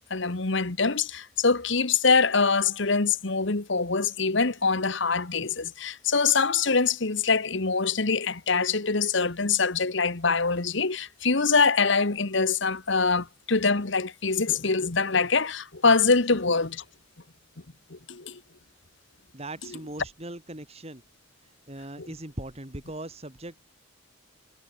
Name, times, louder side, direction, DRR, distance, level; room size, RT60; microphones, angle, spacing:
voice 1, 0.1-16.8 17.9-18.4 22.0-22.1, left 4 dB, 60° left, 1.3 m, -24 dB
voice 2, 19.3-21.0 21.7-23.6, right 1 dB, 30° right, 2.8 m, -39 dB
head